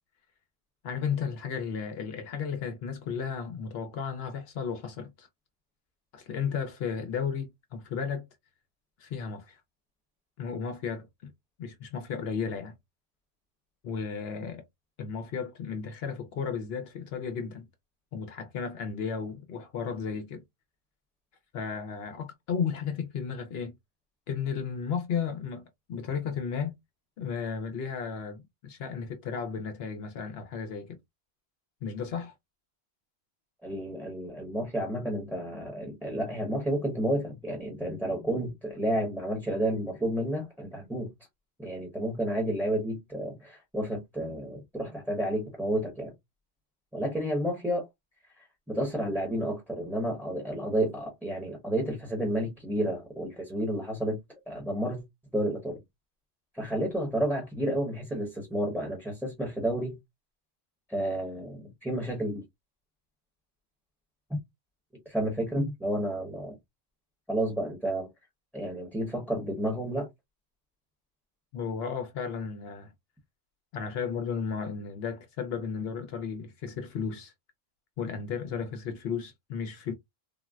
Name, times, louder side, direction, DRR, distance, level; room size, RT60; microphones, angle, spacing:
voice 1, 0.8-5.3 6.1-8.3 9.0-9.6 10.4-11.3 11.6-12.7 13.8-14.6 15.0-17.7 18.1-20.4 21.5-23.7 24.3-25.6 25.9-26.8 27.2-31.0 31.8-32.3 71.5-72.9 73.7-77.3 78.0-79.9, left 6 dB, 70° left, 0.8 m, -34 dB
voice 2, 33.6-41.1 41.6-46.1 46.9-47.9 48.7-54.2 54.5-55.0 55.3-55.8 56.5-60.0 60.9-62.4 64.3-64.4 65.1-66.5 67.3-68.1 68.5-70.1, right 1 dB, ahead, 0.8 m, -31 dB
3.7 x 2.1 x 2.3 m
omnidirectional pair, 1.1 m